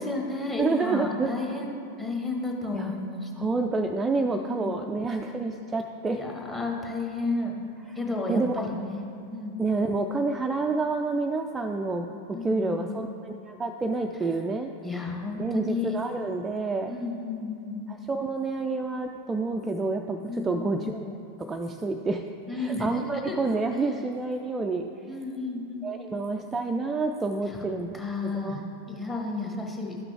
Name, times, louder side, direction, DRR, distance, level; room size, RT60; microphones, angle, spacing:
voice 1, 0.0-3.3 4.3-4.8 6.1-7.6 7.9-9.0 9.3-9.6 12.3-13.1 14.8-15.9 16.9-17.9 20.3-20.8 22.5-23.5 25.1-25.9 27.5-27.6 27.9-28.6 28.9-30.0, left 3 dB, 10° left, -1 dB, 1.3 m, -32 dB
voice 2, 0.6-1.3 2.7-2.9 3.4-6.2 8.3-8.5 9.6-14.7 15.4-17.0 17.9-21.0 21.4-22.2 22.5-24.9 25.8-28.6, right 3 dB, 15° right, 4 dB, 0.3 m, -28 dB
12.0 x 5.9 x 3.4 m, 2.8 s
figure-of-eight pair, 90°, 0 cm